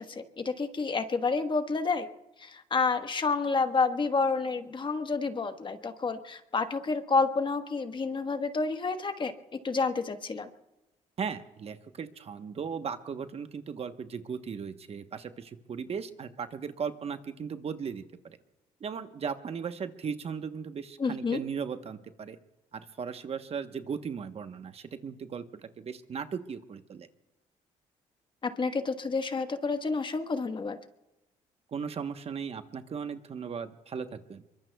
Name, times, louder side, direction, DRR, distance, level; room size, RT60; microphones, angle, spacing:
voice 1, 0.0-2.1 2.4-9.3 9.6-10.5 21.0-21.4 28.4-30.8, left 4 dB, 35° left, 8 dB, 1.3 m, -29 dB
voice 2, 11.2-18.4 18.8-22.4 22.7-27.1 31.7-34.4, right 6 dB, 45° right, 9 dB, 1.1 m, -37 dB
24.5 x 23.0 x 2.3 m, 0.98 s
cardioid pair, 80°, 14 cm